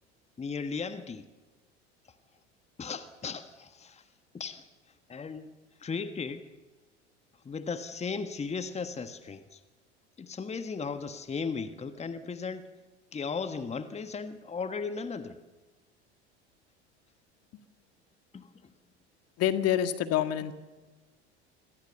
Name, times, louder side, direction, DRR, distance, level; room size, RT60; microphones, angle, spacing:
voice 1, 0.4-1.3 2.8-4.1 4.3-4.7 5.1-5.5 5.8-6.5 7.4-9.6 10.2-12.7 13.1-15.4 18.3-18.7, left 5 dB, 20° left, 10 dB, 1.5 m, -36 dB
voice 2, 19.4-20.5, left 11 dB, 45° left, 9 dB, 1.8 m, -26 dB
27.5 x 22.5 x 7.0 m, 1.2 s
figure-of-eight pair, 70°, 34 cm